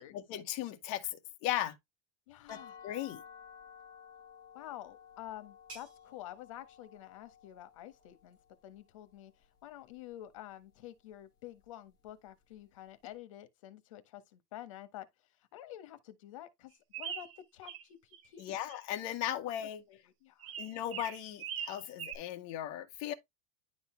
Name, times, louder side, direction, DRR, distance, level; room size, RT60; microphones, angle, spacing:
voice 1, 0.0-1.7 2.5-2.6 2.8-3.2 18.4-19.8 20.6-23.1, left 12 dB, 50° left, 1.6 m, -37 dB
voice 2, 2.3-2.8 4.5-8.4 8.6-9.3 9.6-15.1 15.5-16.7 17.0-18.0 18.2-18.6 19.9-20.5, left 13 dB, 85° left, 1.4 m, -49 dB
sound 1, 2.5-8.3, left 7 dB, 25° left, 1.8 m, -54 dB
sound 2, 4.4-9.8, right 3 dB, 30° right, 5.3 m, -60 dB
sound 3, 16.9-17.8 18.1-18.8 20.4-22.2, right 8 dB, 80° right, 1.9 m, -41 dB
10.5 x 4.0 x 3.3 m
supercardioid pair, 160°, 16 cm